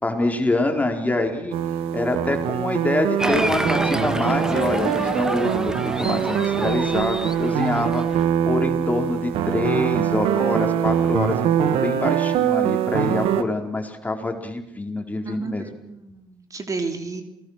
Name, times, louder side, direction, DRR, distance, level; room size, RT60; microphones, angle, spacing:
voice 1, 0.0-1.5 1.9-8.2 8.4-15.7, left 2 dB, 15° left, 3 dB, 4.4 m, -25 dB
sound 1, 1.5-13.4, right 9 dB, 80° right, 1.6 m, -23 dB
Applause, 3.2-8.3, right 1 dB, 5° right, 1.7 m, -28 dB
voice 2, 15.2-17.2, right 4 dB, 35° right, 6 dB, 3.2 m, -32 dB
28.0 x 19.0 x 6.7 m, 0.89 s
supercardioid pair, 65°, 9 cm